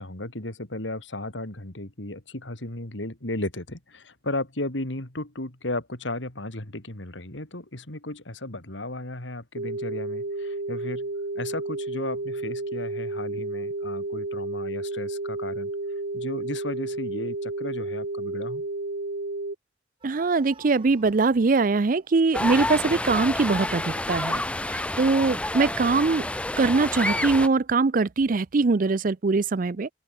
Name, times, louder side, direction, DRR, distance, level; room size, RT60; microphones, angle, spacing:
voice 1, 0.0-11.1 11.4-15.7 16.1-18.6, left 2 dB, 85° left, 3.5 m, -34 dB
sound 1, 9.5-19.5, right 2 dB, 70° right, 1.4 m, -32 dB
sound 2, 20.0-23.4, right 4 dB, 30° right, 3.8 m, -54 dB
voice 2, 20.0-26.3 26.6-29.9, right 4 dB, 45° right, 0.5 m, -22 dB
sound 3, 22.3-27.5, left 1 dB, 5° left, 0.5 m, -29 dB
open air
head